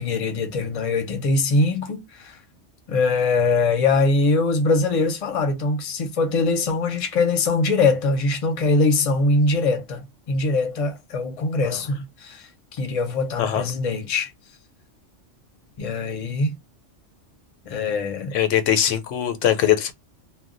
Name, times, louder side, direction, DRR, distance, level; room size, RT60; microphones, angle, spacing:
voice 1, 0.0-2.4 2.9-14.3 15.8-16.5 17.7-18.3, left 3 dB, 40° left, 0.5 m, -22 dB
voice 2, 18.3-19.9, left 10 dB, 90° left, 0.9 m, -21 dB
2.2 x 2.2 x 3.7 m
omnidirectional pair, 1.3 m